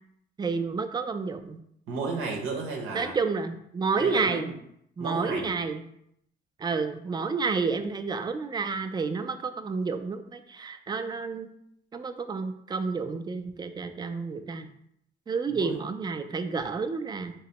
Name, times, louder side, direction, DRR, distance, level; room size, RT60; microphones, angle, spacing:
voice 1, 0.4-1.6 2.9-4.5 5.0-5.9 6.6-11.5 11.9-14.7 15.3-17.3, right 4 dB, 20° right, 8 dB, 0.3 m, -30 dB
voice 2, 1.9-3.1 4.0-4.5 5.0-5.5 15.5-15.8, right 3 dB, 85° right, 0 dB, 0.7 m, -33 dB
3.3 x 3.0 x 2.9 m, 0.72 s
cardioid pair, 90°, 20 cm